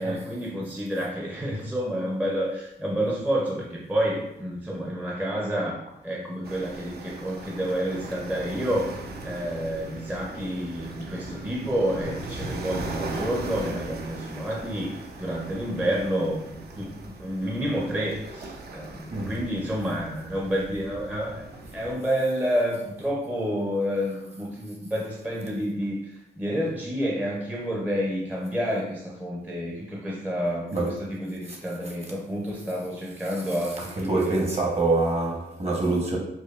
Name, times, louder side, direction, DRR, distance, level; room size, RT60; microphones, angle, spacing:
voice 1, 0.0-5.8 6.0-21.5 21.7-34.5, equal, 10° right, -3 dB, 0.5 m, -29 dB
sound 1, 6.4-21.9, right 2 dB, 70° right, 0.5 m, -38 dB
voice 2, 19.1-19.5 30.7-31.1 31.5-32.1 33.2-36.2, right 2 dB, 40° right, -1 dB, 0.9 m, -27 dB
4.8 x 2.3 x 2.3 m, 0.86 s
wide cardioid pair, 110°, 17 cm